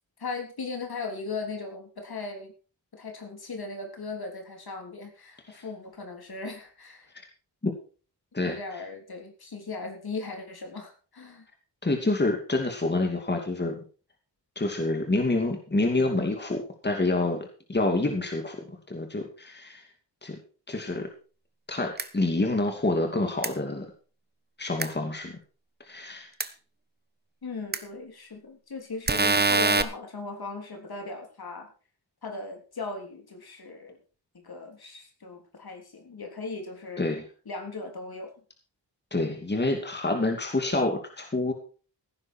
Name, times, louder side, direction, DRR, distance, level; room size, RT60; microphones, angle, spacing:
voice 1, 0.2-2.5 2.9-7.1 8.4-11.5 27.4-31.7 32.2-34.0 34.4-37.0 37.5-38.3, left 3 dB, 60° left, 3 dB, 3.6 m, -38 dB
voice 2, 11.8-13.8 14.6-19.9 20.2-20.4 20.7-21.1 21.7-23.9 24.6-25.4 25.8-26.3 37.0-37.2 39.1-41.5, left 2 dB, 25° left, 4 dB, 2.7 m, -27 dB
sound 1, 22.0-22.1 23.4-23.5 24.8-24.9 26.4-26.5 27.7-27.8 29.1-29.8, right 3 dB, 25° right, 1.1 m, -23 dB
16.5 x 10.0 x 4.5 m, 0.38 s
wide cardioid pair, 105°, 42 cm